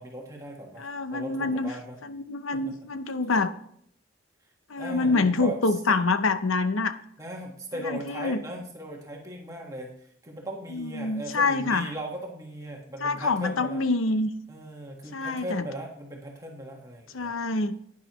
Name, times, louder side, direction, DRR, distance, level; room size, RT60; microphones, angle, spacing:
voice 1, 0.0-2.0 2.5-2.8 3.1-3.2 4.8-6.0 7.2-13.8 14.5-17.4, right 1 dB, 15° right, -1 dB, 1.4 m, -38 dB
voice 2, 0.8-1.7 2.0-3.5 4.7-6.9 7.8-8.4 10.7-11.9 13.0-14.3 15.1-15.6 17.1-17.8, left 3 dB, 85° left, 11 dB, 0.7 m, -26 dB
11.0 x 9.8 x 3.0 m, 0.67 s
head